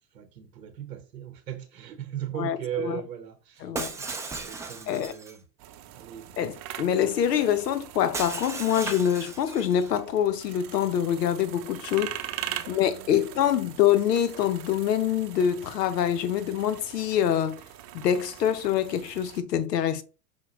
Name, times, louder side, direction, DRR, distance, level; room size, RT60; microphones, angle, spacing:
voice 1, 0.1-3.7 3.9-5.4 5.9-6.3 11.7-12.0 12.4-13.3, right 10 dB, 90° right, 0.9 m, -38 dB
voice 2, 3.6-4.0 4.9-5.1 6.4-12.1 12.7-17.6 17.9-20.0, left 10 dB, 90° left, 0.7 m, -25 dB
Shatter, 3.7-5.4 8.1-10.0, right 4 dB, 5° right, 0.4 m, -36 dB
sound 1, 5.6-19.4, right 12 dB, 45° right, 0.6 m, -42 dB
5.7 x 2.2 x 3.0 m
hypercardioid pair, 95°, 48 cm